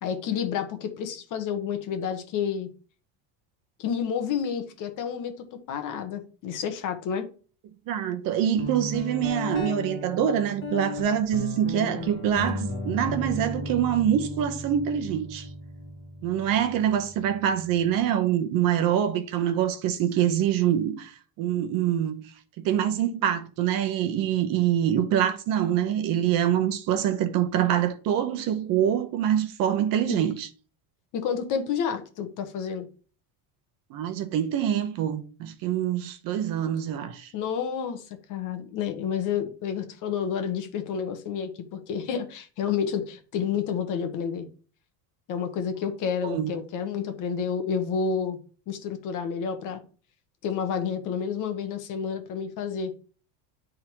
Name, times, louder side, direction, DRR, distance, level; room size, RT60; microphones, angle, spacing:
voice 1, 0.0-2.7 3.8-7.3 30.1-30.2 31.1-32.9 37.3-44.5 45.3-48.4 48.7-49.8 50.4-52.9, left 7 dB, 40° left, 1.2 m, -30 dB
voice 2, 7.9-15.5 16.2-30.5 33.9-37.3 46.2-46.5, right 10 dB, 50° right, 0.9 m, -25 dB
Guitar, 8.6-18.1, left 1 dB, 25° left, 1.3 m, -35 dB
10.0 x 3.8 x 4.6 m
cardioid pair, 170°, 45 cm